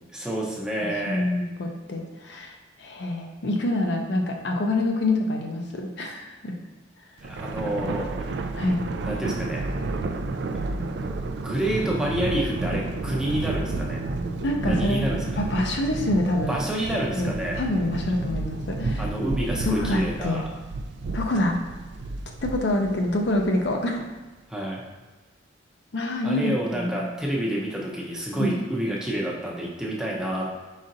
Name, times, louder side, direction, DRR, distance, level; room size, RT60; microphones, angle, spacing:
voice 1, 0.1-1.2 7.2-8.3 9.0-9.6 11.4-14.0 14.6-15.4 16.5-17.6 19.0-20.4 24.5-24.8 26.2-30.5, right 1 dB, 5° right, -3 dB, 0.6 m, -28 dB
voice 2, 0.8-6.6 8.5-8.9 14.4-15.0 15.4-16.5 17.1-19.0 19.6-20.4 21.1-21.6 22.4-24.0 25.9-27.2 28.4-28.6, left 1 dB, 65° left, 2 dB, 0.5 m, -26 dB
Thunder, 7.2-23.8, right 3 dB, 65° right, 0.3 m, -31 dB
4.9 x 4.0 x 2.6 m, 1.3 s
head